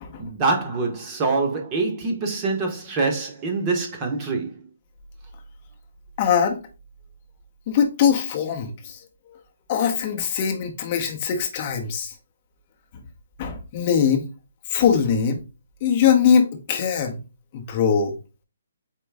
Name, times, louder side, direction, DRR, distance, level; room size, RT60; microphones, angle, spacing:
voice 1, 0.2-4.6, right 3 dB, 20° right, 0.9 m, -25 dB
voice 2, 6.2-6.6 7.7-9.0 9.7-12.1 13.4-14.2 14.7-15.4 15.8-17.2 17.5-18.2, left 7 dB, 30° left, 0.7 m, -21 dB
4.5 x 3.1 x 3.3 m
hypercardioid pair, 165°, 0 cm